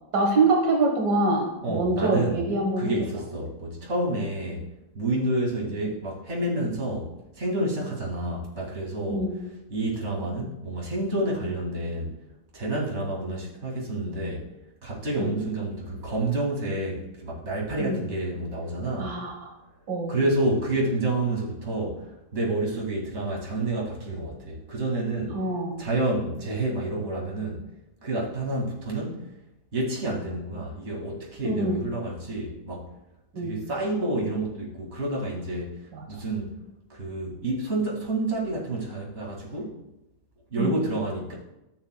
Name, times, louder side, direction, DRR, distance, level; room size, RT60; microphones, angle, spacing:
voice 1, 0.1-2.9 9.1-9.4 15.2-15.3 17.8-18.0 19.0-19.5 19.9-20.1 25.3-25.8 31.4-31.8 33.3-33.6 35.9-36.2 40.6-40.8, right 2 dB, 80° right, 0 dB, 1.9 m, -25 dB
voice 2, 1.6-2.4 2.8-4.6 4.9-9.3 9.7-12.2 12.5-14.5 14.8-19.2 20.1-25.4 25.8-27.6 28.0-29.3 29.7-32.9 33.4-36.5 36.9-39.7 40.5-41.3, right 2 dB, 40° right, -3 dB, 2.5 m, -29 dB
13.5 x 7.1 x 2.2 m, 0.93 s
omnidirectional pair, 1.8 m